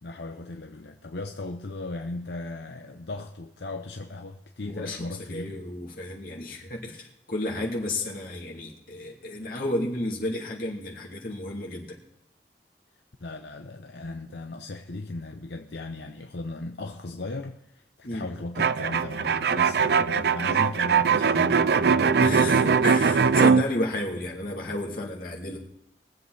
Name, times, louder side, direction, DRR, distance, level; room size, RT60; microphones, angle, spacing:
voice 1, 0.0-5.6 13.2-22.4, left 2 dB, 75° left, 0.8 m, -37 dB
voice 2, 4.6-12.0 18.0-18.3 22.2-25.6, left 1 dB, 55° left, 2.8 m, -32 dB
sound 1, 18.6-23.6, right 6 dB, 60° right, 0.4 m, -21 dB
22.5 x 7.7 x 4.1 m
head